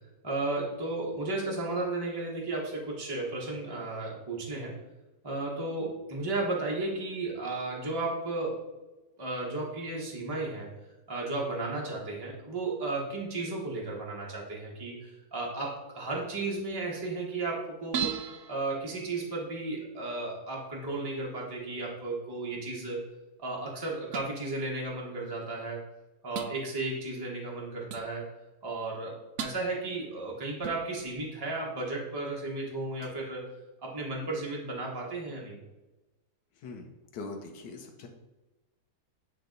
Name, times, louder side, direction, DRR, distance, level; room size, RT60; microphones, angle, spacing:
voice 1, 0.2-4.7 5.2-8.6 9.2-10.7 11.1-18.1 18.5-23.0 23.4-25.8 26.2-28.3 28.6-33.5 33.8-35.6, right 2 dB, 15° right, -3 dB, 1.0 m, -34 dB
sound 1, 17.9-19.7 24.1-24.3 25.4-25.5 26.3-26.5 27.9-28.1 29.4-29.7 30.6-31.2 33.0-33.3, right 8 dB, 65° right, 0.9 m, -37 dB
voice 2, 36.5-38.1, left 3 dB, 80° left, 3 dB, 1.4 m, -42 dB
9.5 x 3.3 x 3.9 m, 1.1 s
omnidirectional pair, 1.8 m